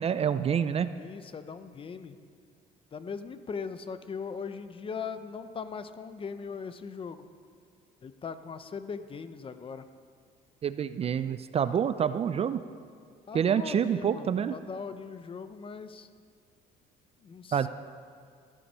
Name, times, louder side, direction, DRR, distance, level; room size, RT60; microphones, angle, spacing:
voice 1, 0.0-0.9 10.6-12.6 13.3-14.5 17.5-17.7, right 8 dB, 35° right, 13 dB, 0.4 m, -27 dB
voice 2, 0.9-2.2 2.9-7.3 8.0-9.9 13.3-16.1 17.2-17.7, left 5 dB, 30° left, 11 dB, 0.7 m, -39 dB
14.0 x 8.7 x 5.5 m, 2.2 s
cardioid pair, 110°, 17 cm